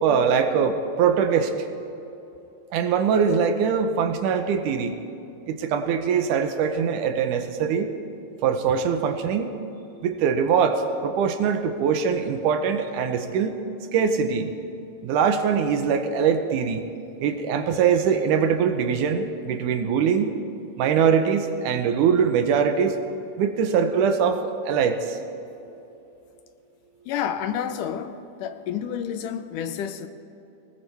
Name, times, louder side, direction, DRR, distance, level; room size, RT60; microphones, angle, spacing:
voice 1, 0.0-1.5 2.7-5.0 5.5-7.9 8.4-9.5 10.0-13.6 13.9-14.5 15.0-16.9 17.2-20.3 20.8-23.0 23.4-25.2, right 6 dB, 80° right, 2.3 m, -22 dB
voice 2, 27.1-30.1, left 9 dB, 85° left, 2.2 m, -30 dB
19.5 x 19.0 x 3.4 m
omnidirectional pair, 3.8 m